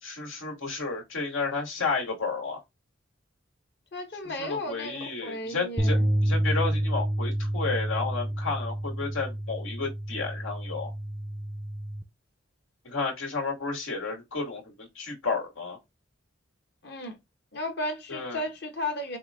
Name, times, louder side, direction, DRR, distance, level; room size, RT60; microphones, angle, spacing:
voice 1, 0.0-2.6 4.4-6.0 6.2-10.9 12.8-15.8 18.1-18.4, left 4 dB, 85° left, 2.1 m, -32 dB
voice 2, 3.9-6.1 16.8-17.2 17.5-19.2, left 1 dB, 55° left, 1.3 m, -34 dB
sound 1, 5.8-12.0, right 1 dB, 5° right, 0.5 m, -29 dB
5.4 x 2.4 x 3.7 m
head